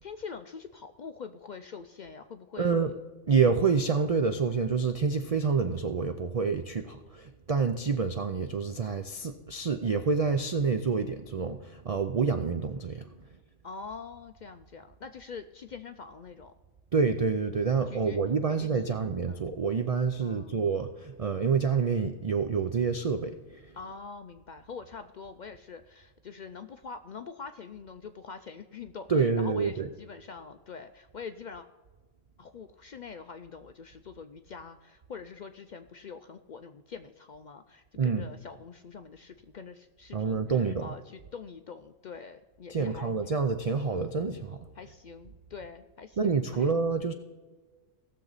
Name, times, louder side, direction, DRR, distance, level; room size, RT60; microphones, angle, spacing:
voice 1, 0.0-3.0 3.3-3.4 13.6-16.5 17.9-18.2 18.5-19.0 19.3-19.4 20.2-20.6 23.7-31.7 32.4-43.1 44.8-46.7, left 5 dB, 75° left, 8 dB, 0.4 m, -44 dB
voice 2, 2.6-2.9 3.3-13.1 16.9-23.6 29.1-29.9 38.0-38.3 40.1-40.9 42.7-44.7 46.2-47.1, right 5 dB, 55° right, 7 dB, 0.4 m, -27 dB
18.0 x 6.8 x 4.0 m, 1.3 s
omnidirectional pair, 1.4 m